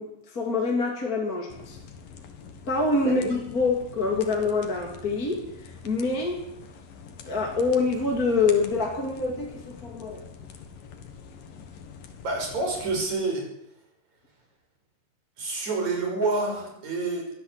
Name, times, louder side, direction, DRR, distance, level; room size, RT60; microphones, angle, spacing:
voice 1, 0.0-1.8 2.7-6.5 7.3-10.2, left 3 dB, 25° left, 0 dB, 3.3 m, -26 dB
sound 1, 1.5-13.1, left 6 dB, 80° left, 3.9 m, -45 dB
voice 2, 12.2-13.5 15.4-17.3, right 3 dB, 55° right, 2 dB, 7.5 m, -28 dB
22.5 x 15.5 x 8.4 m, 0.78 s
omnidirectional pair, 3.9 m